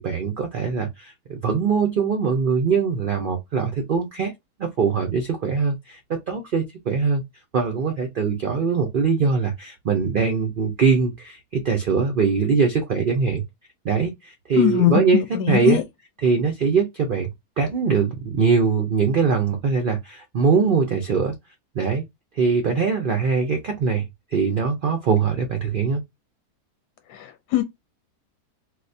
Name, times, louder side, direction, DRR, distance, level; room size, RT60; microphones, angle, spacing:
voice 1, 0.0-4.3 4.6-7.2 7.5-13.4 13.8-15.2 15.5-15.8 16.2-17.3 17.6-21.3 21.7-22.0 22.4-24.1 24.3-26.0, right 5 dB, 90° right, 0.4 m, -22 dB
voice 2, 14.5-15.0 15.3-15.8 27.1-27.6, left 12 dB, 75° left, 1.1 m, -21 dB
4.4 x 2.2 x 2.6 m
omnidirectional pair, 1.7 m